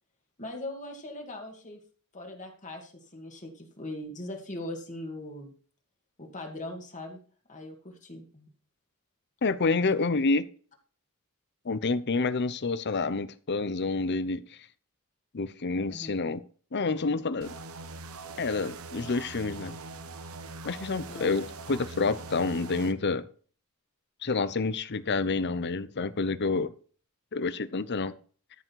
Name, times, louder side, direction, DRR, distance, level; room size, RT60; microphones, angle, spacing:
voice 1, 0.4-1.8 2.1-5.5 6.2-7.2 7.5-8.5 15.9-16.2 21.0-21.3, left 1 dB, 35° left, 2 dB, 2.3 m, -40 dB
voice 2, 9.4-10.4 11.6-14.4 15.3-16.4 16.7-17.6 18.4-19.7 20.6-23.3 24.2-26.7 27.3-28.1, left 3 dB, 50° left, 14 dB, 0.7 m, -28 dB
sound 1, 17.4-22.9, right 3 dB, 70° right, 1.0 m, -42 dB
13.5 x 6.4 x 4.7 m, 0.42 s
head